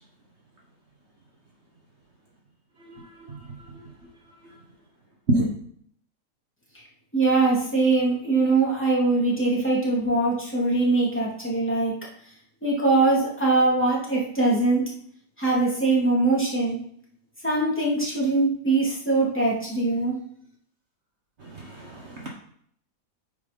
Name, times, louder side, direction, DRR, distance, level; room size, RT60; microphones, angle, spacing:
voice 1, 7.1-11.9 12.6-14.8 15.4-16.8 17.4-20.2, right 3 dB, 5° left, -5 dB, 2.7 m, -22 dB
voice 2, 21.4-22.3, right 1 dB, 45° right, 0 dB, 1.5 m, -27 dB
9.1 x 5.1 x 5.4 m, 0.64 s
omnidirectional pair, 1.7 m